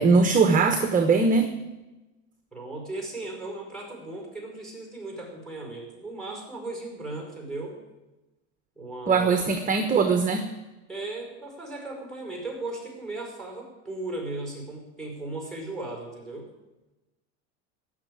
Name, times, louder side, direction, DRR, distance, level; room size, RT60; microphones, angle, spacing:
voice 1, 0.0-1.5 9.1-10.5, right 4 dB, 20° right, 8 dB, 1.1 m, -21 dB
voice 2, 2.5-7.8 8.8-9.5 10.9-16.5, right 2 dB, ahead, 1 dB, 5.4 m, -36 dB
16.5 x 6.6 x 8.7 m, 1.1 s
supercardioid pair, 120°, 38 cm